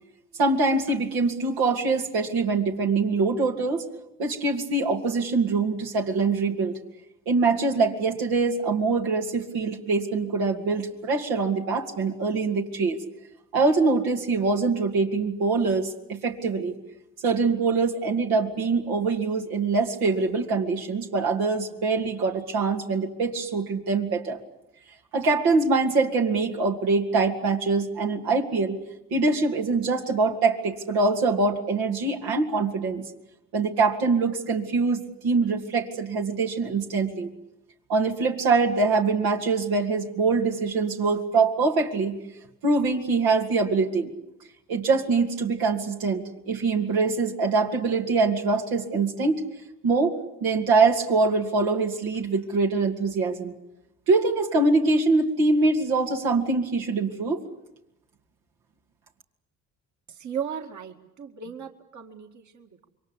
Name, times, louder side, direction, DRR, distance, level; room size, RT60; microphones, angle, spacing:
voice 1, 0.4-3.8 4.2-6.7 7.3-13.0 13.5-16.7 17.2-24.4 25.1-28.8 29.1-33.0 33.5-37.3 37.9-42.2 42.6-44.1 44.7-49.4 49.8-50.2 50.4-53.5 54.1-57.4, right 3 dB, 80° right, 1 dB, 2.8 m, -24 dB
voice 2, 60.1-62.9, right 8 dB, 50° right, 3 dB, 2.3 m, -36 dB
27.0 x 23.0 x 8.3 m, 0.88 s
supercardioid pair, 60°, 37 cm